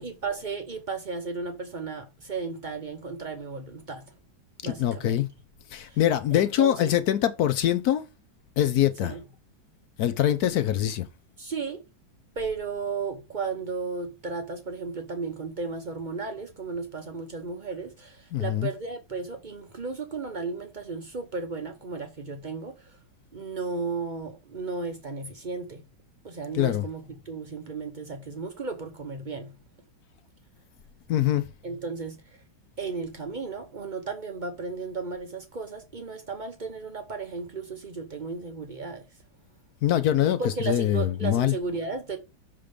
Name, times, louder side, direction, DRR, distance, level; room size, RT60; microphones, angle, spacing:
voice 1, 0.0-4.0 4.6-5.2 5.8-6.0 6.3-6.9 9.0-9.2 11.4-11.8 12.4-23.0 23.3-25.8 26.2-29.5 31.6-32.4 32.8-39.0 40.4-42.2, right 4 dB, 55° right, 0.5 m, -34 dB
voice 2, 4.6-5.3 5.7-8.0 8.6-9.1 10.0-11.1 18.3-18.7 26.5-26.8 31.1-31.5 39.8-41.5, left 11 dB, 65° left, 0.9 m, -24 dB
6.7 x 3.7 x 5.0 m
omnidirectional pair, 2.2 m